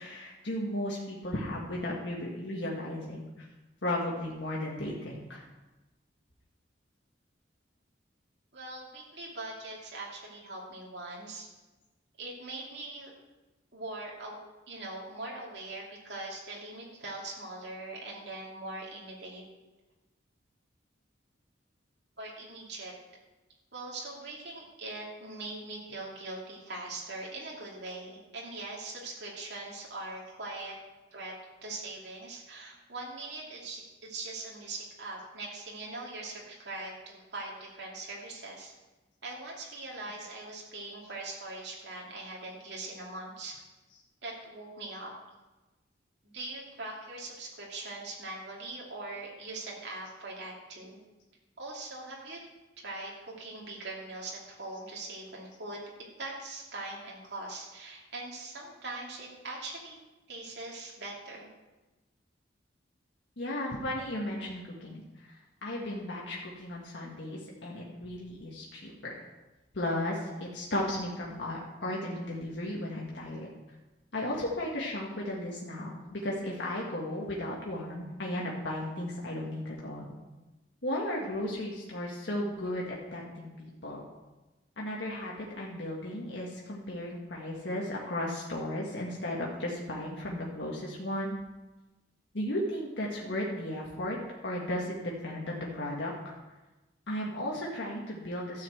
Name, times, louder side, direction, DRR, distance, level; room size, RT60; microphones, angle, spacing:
voice 1, 0.0-3.5 3.8-5.4 63.4-69.1 69.7-73.5 74.1-80.2 80.8-84.1 84.8-91.4 92.3-94.2 94.4-96.4 97.1-98.6, left 1 dB, 70° left, -4 dB, 1.7 m, -35 dB
voice 2, 8.5-11.5 12.2-13.1 13.7-14.4 14.7-19.4 22.2-22.9 23.7-30.8 31.1-31.3 31.6-38.7 39.2-43.6 44.2-45.1 46.2-51.0 51.6-52.4 52.8-60.0 60.3-61.5, right 2 dB, 60° right, -3 dB, 2.7 m, -41 dB
12.5 x 5.7 x 7.8 m, 1.1 s
head